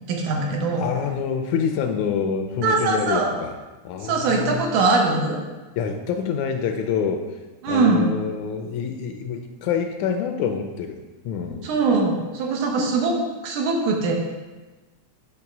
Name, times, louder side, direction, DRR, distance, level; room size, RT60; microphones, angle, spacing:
voice 1, 0.1-0.8 2.6-3.3 4.0-5.4 7.6-8.1 11.6-13.2 13.4-14.1, right 3 dB, 80° right, 0 dB, 2.5 m, -21 dB
voice 2, 0.8-3.5 3.9-4.6 5.8-7.3 7.7-11.0 11.3-11.7, left 6 dB, 80° left, 5 dB, 1.9 m, -26 dB
8.7 x 3.3 x 5.9 m, 1.2 s
omnidirectional pair, 3.5 m